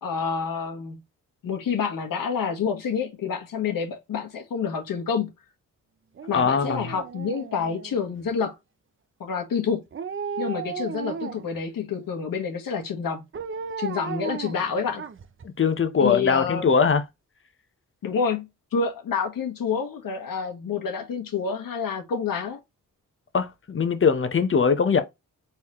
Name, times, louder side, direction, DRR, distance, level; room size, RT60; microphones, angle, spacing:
voice 1, 0.0-1.0 1.4-5.3 6.3-8.5 9.2-9.8 10.4-13.2 13.8-15.1 16.0-16.7 18.0-22.6, left 6 dB, 80° left, 1.5 m, -28 dB
Dog, 6.2-8.2 9.9-11.6 13.3-15.4 15.8-15.9, right 6 dB, 40° right, 0.6 m, -35 dB
voice 2, 6.3-6.9 15.4-17.0 23.3-25.0, left 6 dB, 40° left, 0.9 m, -21 dB
4.1 x 3.7 x 3.0 m
cardioid pair, 85°, 33 cm